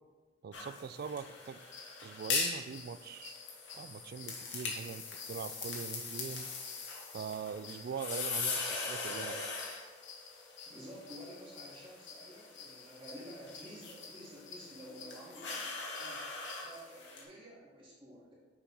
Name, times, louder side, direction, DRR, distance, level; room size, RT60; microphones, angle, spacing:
voice 1, 0.4-1.6 2.0-3.3 3.7-6.5 7.1-9.5, right 6 dB, 55° right, 13 dB, 0.3 m, -42 dB
sound 1, 0.5-17.2, left 4 dB, 65° left, 1.5 m, -41 dB
sound 2, 1.6-16.8, left 5 dB, 85° left, 1.1 m, -53 dB
voice 2, 10.7-16.2 16.6-18.3, equal, 30° right, -7 dB, 1.9 m, -51 dB
7.1 x 3.7 x 5.4 m, 1.3 s
head